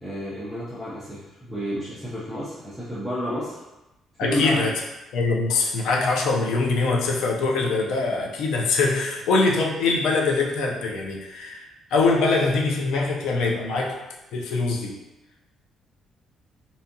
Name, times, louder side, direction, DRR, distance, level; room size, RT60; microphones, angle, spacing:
voice 1, 0.0-3.6 4.2-4.6, equal, ahead, -10 dB, 0.5 m, -30 dB
voice 2, 4.2-4.7 5.1-14.0 14.3-15.0, left 3 dB, 90° left, 0 dB, 0.4 m, -23 dB
2.6 x 2.3 x 2.6 m, 0.98 s
cardioid pair, 155°, 0 cm